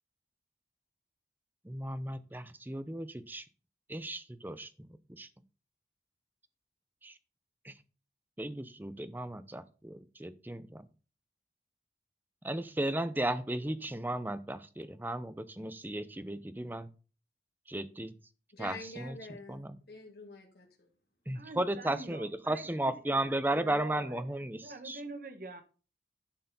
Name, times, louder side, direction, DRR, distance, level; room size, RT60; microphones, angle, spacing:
voice 1, 1.6-3.4 3.9-4.9 5.2-5.3 7.0-7.1 7.6-7.7 8.4-10.8 12.4-16.9 17.7-18.1 18.6-19.2 19.5-19.8 21.3-24.6 24.8-25.0, right 1 dB, 10° right, 0.6 m, -35 dB
voice 2, 18.5-20.9, left 2 dB, 65° left, 1.9 m, -47 dB
voice 3, 21.3-23.3 23.5-24.3 24.6-25.6, right 2 dB, 50° right, 1.1 m, -45 dB
11.0 x 4.7 x 5.4 m
head